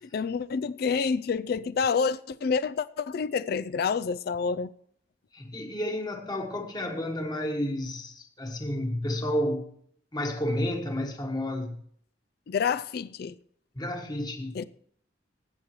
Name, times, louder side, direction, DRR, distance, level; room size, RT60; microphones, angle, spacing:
voice 1, 0.0-4.7 12.5-13.3 14.5-14.6, left 5 dB, 55° left, 0.4 m, -28 dB
voice 2, 5.3-9.7 10.1-11.8 13.8-14.7, left 1 dB, 20° left, 1.3 m, -31 dB
19.5 x 8.7 x 3.1 m
head